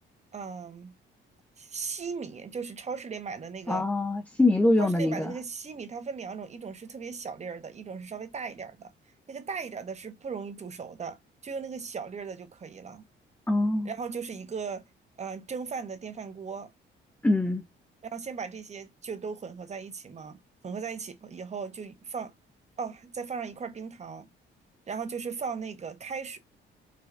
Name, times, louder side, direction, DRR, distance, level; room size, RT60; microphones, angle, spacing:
voice 1, 0.3-0.9 1.6-3.9 4.8-8.9 9.3-11.2 11.4-13.0 13.8-14.8 15.2-16.7 18.1-22.3 22.8-24.3 24.9-26.4, right 5 dB, 35° right, 0.7 m, -37 dB
voice 2, 3.7-5.3 13.5-13.9 17.2-17.6, left 2 dB, 10° left, 0.4 m, -24 dB
4.9 x 2.2 x 2.5 m
cardioid pair, 90°, 20 cm